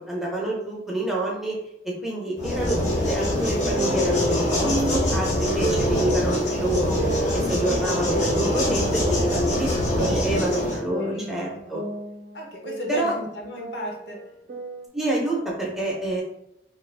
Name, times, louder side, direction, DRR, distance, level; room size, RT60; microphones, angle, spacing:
voice 1, 0.0-1.6 1.8-7.0 7.3-11.8 12.9-13.1 14.9-16.2, right 1 dB, ahead, -3 dB, 0.5 m, -28 dB
sound 1, 2.4-10.8, left 1 dB, 40° left, 0.6 m, -24 dB
sound 2, 3.8-5.1 5.6-6.1 7.0-8.6 9.1-10.6 10.9-13.0 13.3-14.9, right 2 dB, 55° right, 0.4 m, -30 dB
voice 2, 9.3-9.6 11.0-11.7 12.3-14.2, left 1 dB, 75° left, -1 dB, 0.8 m, -36 dB
2.8 x 2.4 x 3.2 m, 0.81 s
head